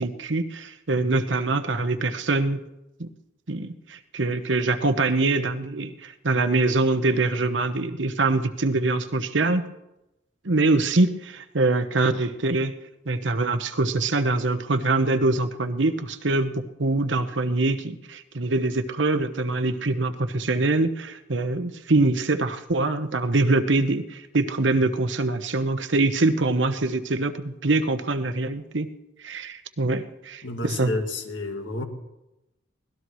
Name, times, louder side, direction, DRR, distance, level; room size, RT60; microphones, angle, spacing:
voice 1, 0.0-2.7 3.0-3.1 3.5-9.6 10.4-12.8 13.1-28.9 29.2-30.9, right 2 dB, 80° right, 8 dB, 1.1 m, -24 dB
voice 2, 30.4-31.8, left 2 dB, 80° left, 4 dB, 2.1 m, -30 dB
24.0 x 18.5 x 3.2 m, 0.96 s
head